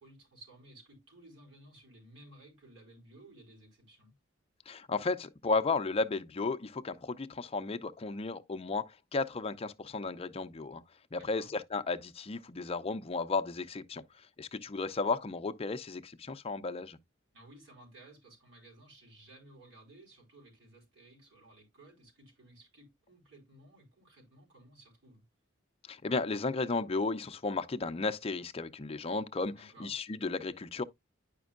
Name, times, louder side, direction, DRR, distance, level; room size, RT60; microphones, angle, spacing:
voice 1, 0.0-4.1 11.2-11.5 17.3-25.2 29.5-29.9, right 1 dB, 65° right, 4.0 m, -56 dB
voice 2, 4.7-10.8 11.1-14.0 14.4-17.0 25.9-30.8, left 3 dB, 30° left, 0.5 m, -34 dB
10.0 x 5.2 x 2.4 m
head